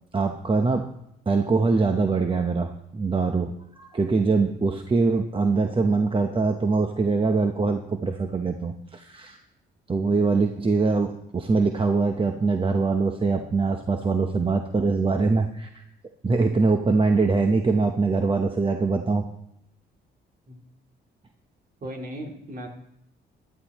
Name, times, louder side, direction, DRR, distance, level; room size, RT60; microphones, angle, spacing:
voice 1, 0.1-0.9 1.3-9.4 9.9-15.8 16.2-19.3, right 4 dB, 25° right, 5 dB, 0.9 m, -23 dB
voice 2, 21.8-22.7, equal, 45° right, 1 dB, 2.7 m, -36 dB
14.0 x 11.5 x 3.0 m, 0.78 s
cardioid pair, 90°, 20 cm